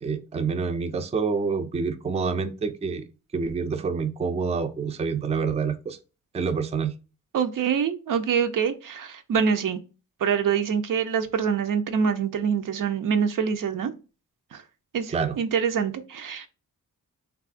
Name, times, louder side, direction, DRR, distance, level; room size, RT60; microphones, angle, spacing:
voice 1, 0.0-3.0 3.3-6.0 6.3-6.9 15.1-15.4, right 5 dB, 20° right, 0.3 m, -27 dB
voice 2, 7.3-9.8 10.2-13.9 14.5-14.6 14.9-16.5, right 7 dB, 75° right, 0.5 m, -25 dB
3.5 x 2.3 x 2.4 m
wide cardioid pair, 90°, 33 cm